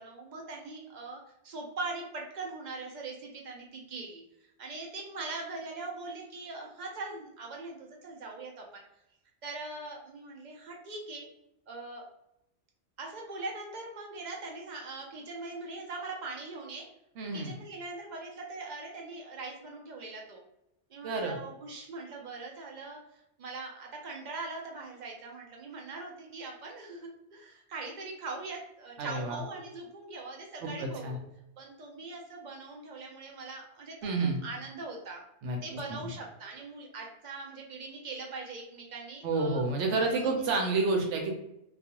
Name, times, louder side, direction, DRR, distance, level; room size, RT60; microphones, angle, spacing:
voice 1, 0.0-4.2 4.6-8.8 9.4-11.3 11.7-12.1 13.0-16.8 17.3-20.4 20.9-31.2 31.6-34.1 34.4-35.2 35.6-39.6 40.0-40.4, right 3 dB, 55° right, 0 dB, 0.5 m, -41 dB
voice 2, 17.2-17.5 21.0-21.4 29.0-29.4 30.6-31.2 34.0-34.4 35.4-35.6 35.9-36.0 39.2-41.3, right 3 dB, 85° right, 2 dB, 0.9 m, -29 dB
2.3 x 2.3 x 2.8 m, 0.82 s
omnidirectional pair, 1.2 m